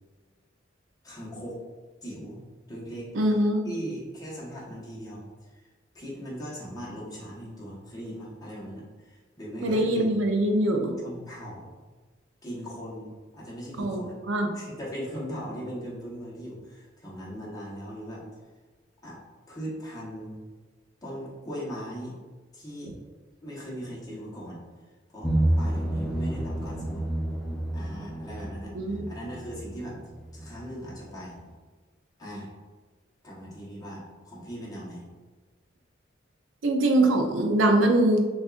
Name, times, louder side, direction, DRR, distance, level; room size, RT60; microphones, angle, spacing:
voice 1, 1.0-1.6 2.0-2.4 2.7-3.1 3.6-5.2 5.5-5.7 5.9-10.2 11.0-11.7 12.4-14.1 14.5-18.3 19.0-19.2 19.5-20.4 21.0-22.1 22.5-22.9 23.4-24.6 25.1-27.0 27.7-30.0 30.3-31.4 32.2-32.5 33.2-35.0, equal, 20° left, -6 dB, 1.1 m, -39 dB
voice 2, 3.1-3.7 9.6-10.9 13.8-14.0 14.3-14.5 28.7-29.0 36.6-38.3, right 1 dB, 85° right, 3 dB, 0.5 m, -23 dB
sound 1, 25.2-31.0 31.3-31.4, right 1 dB, 5° left, 0.4 m, -30 dB
6.2 x 2.4 x 2.4 m, 1.3 s
head